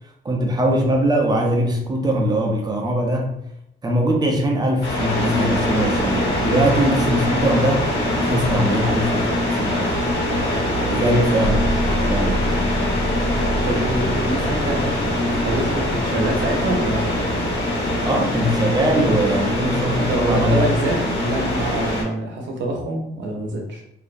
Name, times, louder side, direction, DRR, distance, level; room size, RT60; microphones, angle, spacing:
voice 1, 0.2-3.3 3.8-7.9 8.2-9.9 10.3-11.6 12.1-12.4 18.0-20.7 21.2-21.3, right 1 dB, 20° right, 1 dB, 0.5 m, -21 dB
sound 1, 4.8-22.0, left 1 dB, 65° left, 1.1 m, -23 dB
voice 2, 10.9-11.3 13.6-17.1 20.1-23.8, right 1 dB, 70° right, 1 dB, 0.7 m, -25 dB
sound 2, 11.4-18.3, equal, 25° left, 0.7 m, -28 dB
2.4 x 2.0 x 2.5 m, 0.78 s
cardioid pair, 90°, 20 cm